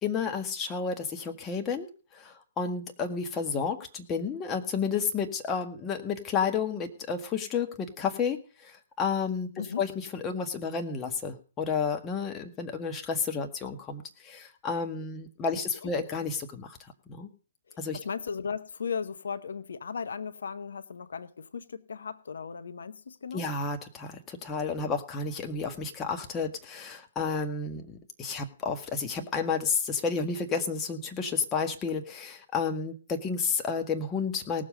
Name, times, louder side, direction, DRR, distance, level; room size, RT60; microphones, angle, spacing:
voice 1, 0.0-1.9 2.1-16.8 17.1-17.3 17.8-18.0 23.3-34.6, left 5 dB, 20° left, 4 dB, 1.8 m, -31 dB
voice 2, 17.9-23.4, left 6 dB, 75° left, 12 dB, 0.8 m, -36 dB
18.5 x 7.5 x 5.2 m, 0.37 s
hypercardioid pair, 130°, 0 cm